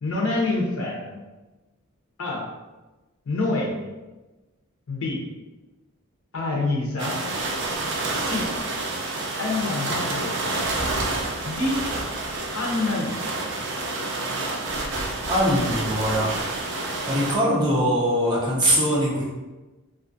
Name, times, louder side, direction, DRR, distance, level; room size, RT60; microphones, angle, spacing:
voice 1, 0.0-1.2 2.2-2.5 3.3-3.9 4.9-5.3 6.3-7.2 8.2-8.5 9.4-10.6 11.4-11.9 12.5-13.4, left 2 dB, 80° left, -3 dB, 0.6 m, -27 dB
sound 1, 7.0-17.4, right 2 dB, 60° right, 0.4 m, -28 dB
voice 2, 15.3-16.3 17.1-19.2, equal, 20° right, -6 dB, 0.7 m, -22 dB
2.5 x 2.3 x 2.5 m, 1.1 s
head